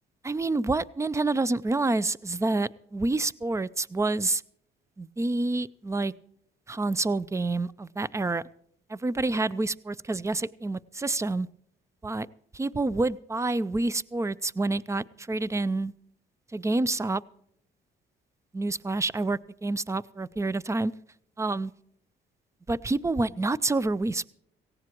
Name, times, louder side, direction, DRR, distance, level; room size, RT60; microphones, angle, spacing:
voice 1, 0.2-4.4 5.0-6.1 6.7-8.4 8.9-11.5 12.0-12.3 12.5-15.9 16.5-17.2 18.5-20.9 21.4-21.7 22.7-24.3, right 2 dB, 15° right, 21 dB, 0.5 m, -28 dB
18.0 x 16.0 x 3.0 m, 0.70 s
cardioid pair, 90°, 20 cm